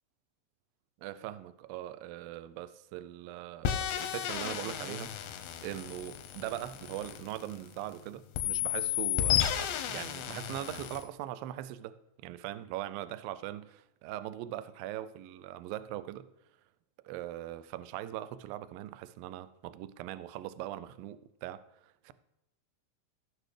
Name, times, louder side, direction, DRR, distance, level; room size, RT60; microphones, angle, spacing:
voice 1, 1.0-16.3 17.0-22.1, right 13 dB, 80° right, 2.1 m, -41 dB
sound 1, 3.6-7.9 8.3-11.0, left 11 dB, 90° left, 2.9 m, -33 dB
16.0 x 6.7 x 3.3 m
omnidirectional pair, 4.6 m